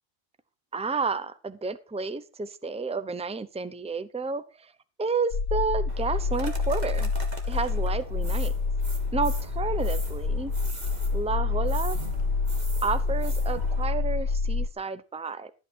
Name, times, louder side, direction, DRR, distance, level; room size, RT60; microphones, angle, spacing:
voice 1, 0.7-4.4 5.0-7.1 7.5-8.5 9.1-10.5 11.1-12.0 12.8-15.5, right 4 dB, 5° right, 13 dB, 0.7 m, -30 dB
sound 1, 5.3-14.7, left 4 dB, 80° left, 1.3 m, -27 dB
sound 2, 5.9-13.9, right 2 dB, 45° right, 2.2 m, -42 dB
13.0 x 8.8 x 4.5 m, 0.32 s
omnidirectional pair, 1.0 m